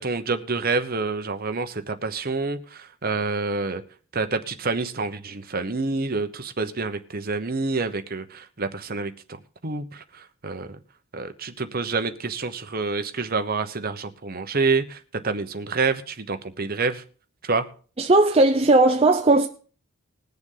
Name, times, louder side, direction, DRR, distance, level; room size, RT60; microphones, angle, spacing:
voice 1, 0.0-3.8 4.1-10.7 11.1-15.0 15.2-17.0 17.4-17.7, right 4 dB, 40° right, 1.0 m, -27 dB
voice 2, 18.0-19.5, right 2 dB, 25° right, 0.6 m, -17 dB
21.0 x 7.0 x 3.9 m
head